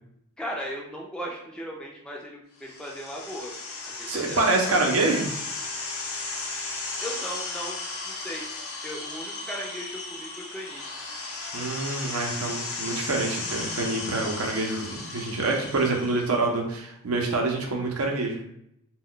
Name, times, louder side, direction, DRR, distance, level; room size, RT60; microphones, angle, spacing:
voice 1, 0.4-3.5 4.0-4.8 7.0-8.5 8.8-10.8, equal, 5° left, -2 dB, 0.4 m, -37 dB
sound 1, 2.6-16.4, left 3 dB, 70° left, 0.6 m, -35 dB
voice 2, 4.1-5.3 11.5-18.4, right 2 dB, 75° right, 1 dB, 0.7 m, -26 dB
2.2 x 2.2 x 3.7 m, 0.75 s
head